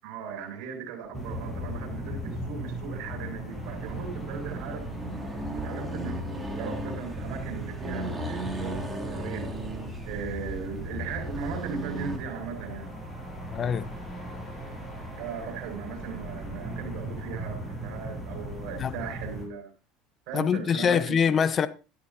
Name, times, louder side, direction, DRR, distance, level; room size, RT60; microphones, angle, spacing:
voice 1, 0.0-4.9 5.5-9.6 10.0-13.0 15.2-19.7 20.3-21.3, right 6 dB, 70° right, 6.3 m, -38 dB
sound 1, 1.1-19.5, equal, 5° left, 6.9 m, -38 dB
Accelerating revving vroom, 3.5-12.2, right 2 dB, 15° right, 3.0 m, -36 dB
voice 2, 13.5-13.9 18.8-19.0 20.3-21.7, left 7 dB, 35° left, 1.0 m, -24 dB
13.5 x 11.5 x 2.8 m
supercardioid pair, 105°, 0 cm